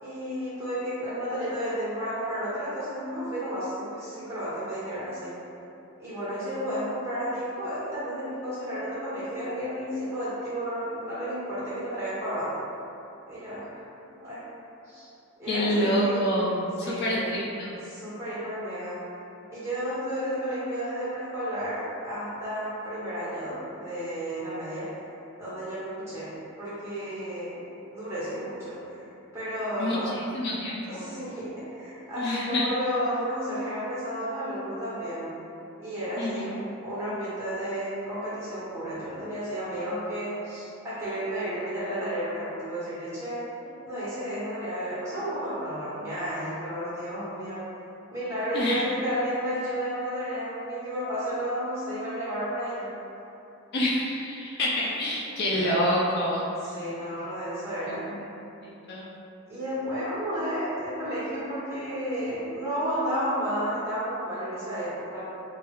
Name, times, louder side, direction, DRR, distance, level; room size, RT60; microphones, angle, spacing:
voice 1, 0.0-5.4 6.0-12.7 13.3-13.9 14.1-14.4 14.8-15.1 15.4-16.3 16.8-17.2 17.9-19.0 19.5-24.9 25.4-27.5 27.9-29.0 29.3-30.1 30.8-35.3 35.8-36.5 36.8-43.5 43.8-47.6 48.1-52.9 55.5-55.7 56.6-58.1 59.5-65.2, equal, 15° right, -11 dB, 1.1 m, -32 dB
voice 2, 15.5-17.7 29.8-31.0 32.2-32.7 36.2-36.6 48.5-48.8 53.7-56.8 57.9-58.3 58.6-59.1, equal, 50° left, -5 dB, 0.4 m, -27 dB
2.9 x 2.4 x 3.0 m, 2.8 s
head